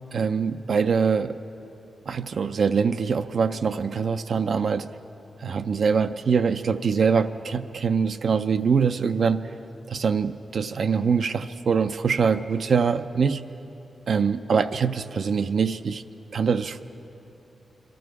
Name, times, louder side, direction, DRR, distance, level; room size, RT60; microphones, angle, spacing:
voice 1, 0.1-1.4 2.1-4.9 5.4-9.4 9.9-13.4 14.1-16.0 16.3-16.8, right 6 dB, 55° right, 10 dB, 0.4 m, -23 dB
23.5 x 13.0 x 4.7 m, 2.9 s
wide cardioid pair, 165°, 0 cm